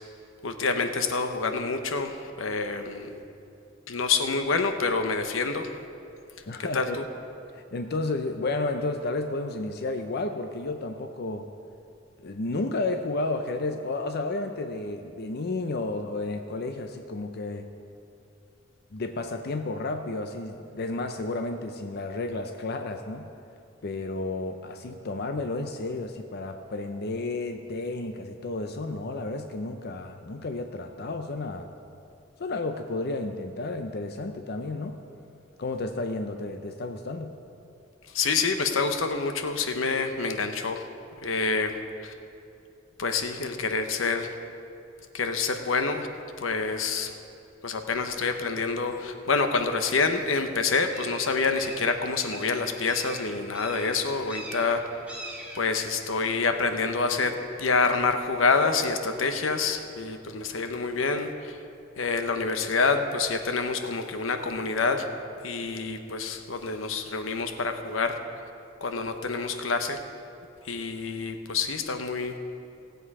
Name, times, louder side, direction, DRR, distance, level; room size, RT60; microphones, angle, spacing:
voice 1, 0.4-3.1 3.9-5.7 6.6-7.0 38.1-40.8 41.2-42.1 43.0-44.3 45.1-46.1 46.4-47.2 47.6-54.8 55.5-61.6 62.0-65.1 65.4-68.2 68.8-70.0 70.6-72.3, left 4 dB, 80° left, 7 dB, 0.9 m, -27 dB
voice 2, 6.5-7.0 7.5-11.5 12.2-17.7 18.9-23.3 23.8-31.7 32.4-35.0 35.6-37.3, left 2 dB, 55° left, 6 dB, 0.6 m, -32 dB
sound 1, 47.8-61.6, right 1 dB, 5° right, 1.5 m, -47 dB
17.5 x 7.9 x 4.8 m, 2.6 s
head